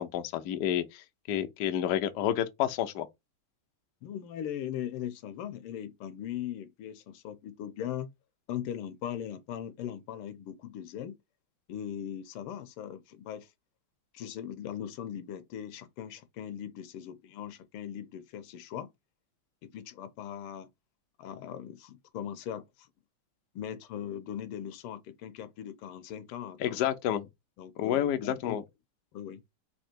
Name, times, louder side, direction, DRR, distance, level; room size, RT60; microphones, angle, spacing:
voice 1, 0.0-3.1 26.6-27.3 27.8-28.6, left 11 dB, 70° left, 1.0 m, -30 dB
voice 2, 4.0-8.1 8.5-11.2 11.7-13.5 14.1-18.9 19.6-20.7 21.2-22.9 23.5-26.8 27.6-28.6 29.1-29.4, left 10 dB, 90° left, 1.6 m, -39 dB
4.4 x 2.8 x 4.3 m
omnidirectional pair, 2.4 m